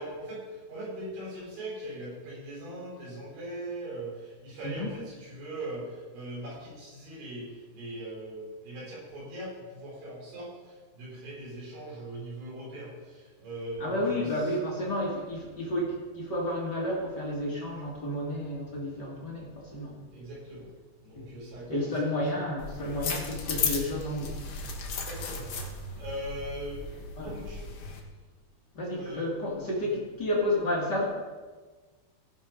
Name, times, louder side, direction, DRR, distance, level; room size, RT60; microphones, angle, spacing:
voice 1, 0.0-14.3 20.1-20.7 21.0-22.2 25.1-25.5 26.0-27.6 29.0-29.3, right 1 dB, 65° right, -6 dB, 6.6 m, -40 dB
voice 2, 13.8-20.1 21.1-21.4 21.7-24.5 27.2-27.3 28.7-31.0, left 1 dB, 40° left, -4 dB, 1.5 m, -31 dB
sound 1, 22.6-28.0, left 4 dB, 85° left, 1.3 m, -35 dB
17.5 x 6.2 x 5.2 m, 1.4 s
omnidirectional pair, 5.0 m